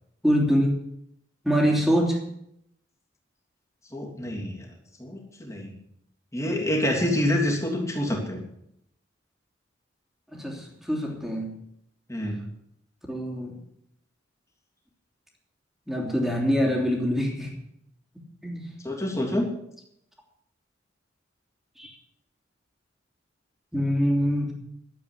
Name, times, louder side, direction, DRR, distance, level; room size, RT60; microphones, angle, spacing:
voice 1, 0.2-0.8 1.4-2.2 10.3-11.6 13.1-13.6 15.9-17.6 18.4-18.7 21.8-21.9 23.7-24.5, equal, ahead, -1 dB, 3.1 m, -24 dB
voice 2, 3.9-4.6 5.0-5.7 6.3-8.4 12.1-12.4 18.8-19.5, left 1 dB, 15° left, 0 dB, 3.1 m, -27 dB
12.5 x 8.5 x 9.9 m, 0.77 s
head